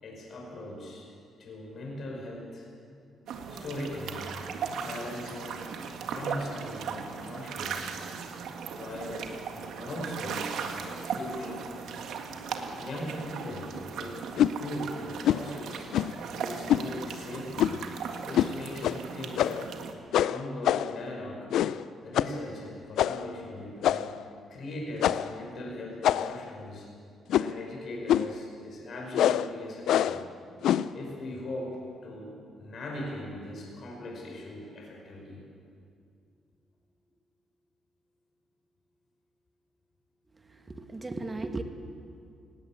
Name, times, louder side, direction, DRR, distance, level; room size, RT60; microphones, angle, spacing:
voice 1, 0.0-1.1 1.4-2.7 3.5-4.3 4.7-5.6 6.0-7.8 8.7-9.3 9.8-10.6 10.8-11.7 12.8-15.9 16.3-17.8 18.2-19.8 20.2-21.5 22.0-26.9 27.3-30.2 30.9-35.4, left 1 dB, 55° left, -1 dB, 5.1 m, -39 dB
sound 1, 3.3-19.9, right 6 dB, 80° right, 1.9 m, -38 dB
sound 2, 14.4-14.6 15.2-15.5 15.9-16.2 16.7-16.9 17.6-17.9 18.3-18.5 18.8-19.0 19.4-19.7 20.1-21.0 21.5-21.8 22.2-22.4 23.0-23.3 23.8-24.2 25.0-25.4 26.0-26.5 27.3-27.6 28.1-28.4 29.1-29.5 29.9-30.2 30.6-30.9, left 11 dB, 80° left, 0.5 m, -25 dB
voice 2, 40.3-41.6, right 2 dB, 25° right, 6 dB, 1.8 m, -37 dB
18.5 x 17.0 x 8.7 m, 2.4 s
cardioid pair, 90°, 0 cm